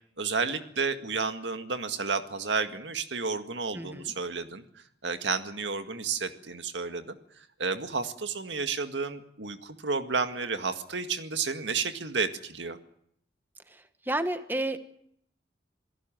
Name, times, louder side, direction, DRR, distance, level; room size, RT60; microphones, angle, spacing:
voice 1, 0.2-4.6 5.0-7.1 7.6-12.8, right 4 dB, 80° right, 8 dB, 1.9 m, -31 dB
voice 2, 3.7-4.1 14.1-14.8, right 1 dB, 10° right, 9 dB, 1.3 m, -30 dB
27.0 x 17.5 x 7.6 m, 0.69 s
head